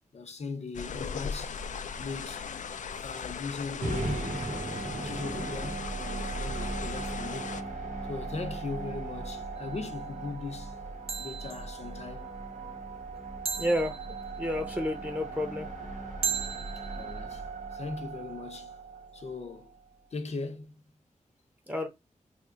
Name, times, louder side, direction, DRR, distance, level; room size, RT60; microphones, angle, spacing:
voice 1, 0.1-1.6 2.0-2.5 3.0-4.5 4.8-7.7 8.1-10.8 11.2-12.3 16.9-18.7 19.1-19.7 20.1-20.8, left 4 dB, 60° left, 0.7 m, -39 dB
sound 1, 0.7-7.6, left 6 dB, 75° left, 0.4 m, -38 dB
sound 2, 3.8-20.0, right 3 dB, 90° right, 1.1 m, -38 dB
sound 3, 9.6-9.9 11.1-11.8 13.5-14.5 16.2-17.2, right 6 dB, 50° right, 0.4 m, -36 dB
voice 2, 13.6-14.0 14.4-15.7 21.7-21.9, left 1 dB, 15° right, 0.7 m, -30 dB
3.5 x 2.0 x 3.7 m
wide cardioid pair, 105°, 13 cm